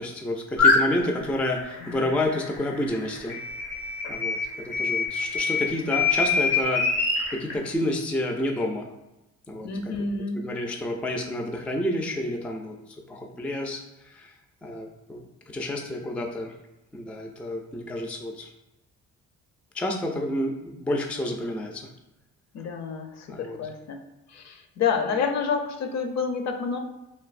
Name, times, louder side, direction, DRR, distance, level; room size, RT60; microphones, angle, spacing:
voice 1, 0.0-3.4 4.1-6.8 7.3-8.9 9.5-9.9 10.3-12.8 13.1-14.3 14.6-16.5 16.9-18.5 19.7-21.8 23.3-23.6, left 1 dB, 5° left, 2 dB, 0.3 m, -29 dB
sound 1, 0.6-0.8 1.5-4.5 4.7-7.5, left 4 dB, 85° left, 1.1 m, -24 dB
voice 2, 1.8-2.2 9.6-10.4 22.5-24.0 24.3-26.8, left 5 dB, 60° left, 5 dB, 0.5 m, -29 dB
3.2 x 2.6 x 2.4 m, 0.96 s
cardioid pair, 90°, 30 cm